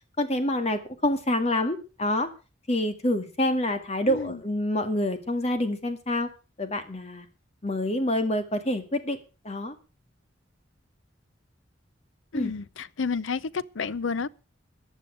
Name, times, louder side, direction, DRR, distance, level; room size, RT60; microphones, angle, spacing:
voice 1, 0.2-2.3 2.7-6.3 6.6-7.3 7.6-9.2 9.4-9.7 12.3-12.5, left 1 dB, 35° left, 2.0 m, -27 dB
voice 2, 4.1-4.4 12.3-14.3, left 5 dB, 90° left, 0.7 m, -30 dB
15.0 x 9.7 x 6.3 m
head